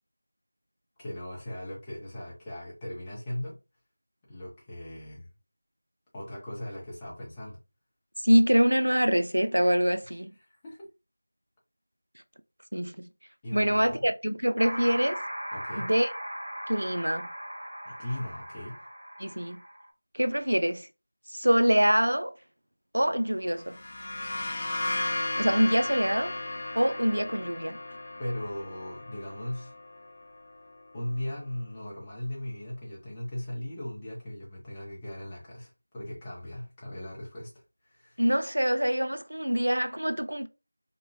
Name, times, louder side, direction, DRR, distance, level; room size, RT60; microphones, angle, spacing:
voice 1, 1.0-3.6 4.3-5.3 6.1-7.6 10.6-10.9 13.4-14.1 15.5-15.9 17.9-18.8 28.2-29.7 30.9-37.5 37.9-38.2, left 1 dB, 15° left, 0.7 m, -38 dB
voice 2, 8.2-10.3 12.7-13.1 13.5-15.2 15.7-16.1 16.7-17.3 19.2-19.6 20.1-20.9 21.3-22.3 22.9-23.8 25.4-26.4 26.7-27.8 38.2-40.5, equal, 90° right, 0.3 m, -25 dB
sound 1, 14.6-19.9, equal, 40° right, 1.1 m, -38 dB
sound 2, 23.6-31.2, left 2 dB, 40° left, 0.3 m, -35 dB
2.9 x 2.0 x 2.6 m
figure-of-eight pair, 175°, 0 cm